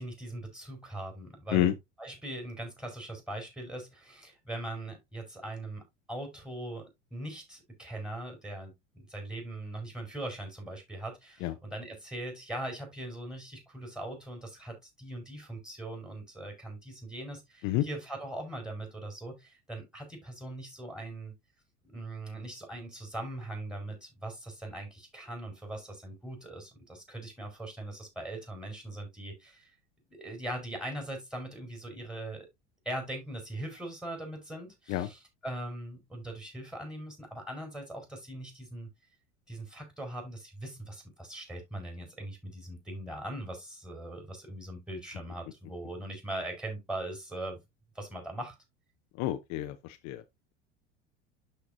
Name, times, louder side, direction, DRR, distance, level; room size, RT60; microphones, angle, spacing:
voice 1, 0.0-1.7 2.0-5.8 6.1-21.3 21.9-29.7 30.1-32.5 32.8-38.9 39.5-47.6 47.9-48.5, right 1 dB, ahead, 4.6 m, -40 dB
voice 2, 49.2-50.2, left 14 dB, 50° left, 0.8 m, -29 dB
12.0 x 4.6 x 2.7 m
hypercardioid pair, 80°, 36 cm